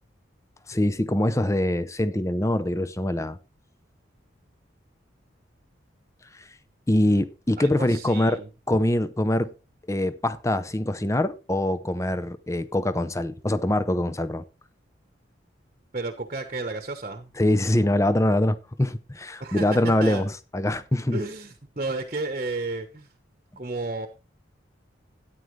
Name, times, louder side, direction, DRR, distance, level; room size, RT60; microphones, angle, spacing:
voice 1, 0.7-3.4 6.9-8.4 8.7-9.5 9.9-14.4 17.4-21.2, left 1 dB, 15° left, 0.6 m, -24 dB
voice 2, 7.6-8.5 15.9-17.3 19.4-19.7 20.0-20.2 21.1-23.1 23.6-24.1, right 2 dB, 40° right, 1.1 m, -32 dB
13.0 x 9.3 x 3.2 m
head